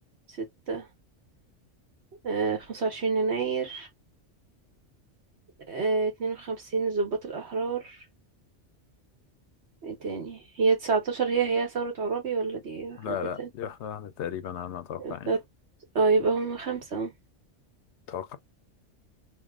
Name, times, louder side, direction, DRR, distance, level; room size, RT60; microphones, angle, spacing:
voice 1, 0.4-0.9 2.2-3.9 5.7-8.0 9.8-13.5 15.0-15.4 15.9-17.1, right 4 dB, 65° right, 1.5 m, -28 dB
voice 2, 13.0-15.4 18.1-18.4, left 9 dB, 75° left, 0.9 m, -35 dB
3.5 x 2.1 x 3.5 m
omnidirectional pair, 1.2 m